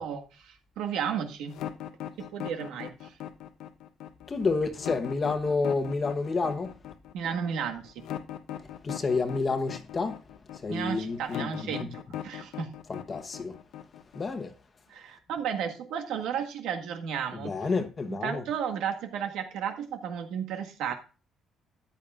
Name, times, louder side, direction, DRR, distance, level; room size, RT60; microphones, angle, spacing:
voice 1, 0.0-1.5 2.2-3.2 7.1-8.1 10.7-12.8 14.9-17.5 18.1-20.9, right 8 dB, 85° right, 1.7 m, -33 dB
sound 1, 1.5-14.4, left 11 dB, 75° left, 0.9 m, -39 dB
voice 2, 4.3-6.7 8.8-10.2 10.5-11.9 12.9-13.6 14.1-14.5 17.3-18.4, left 4 dB, 25° left, 1.1 m, -29 dB
13.5 x 10.0 x 2.5 m
cardioid pair, 175°, 0 cm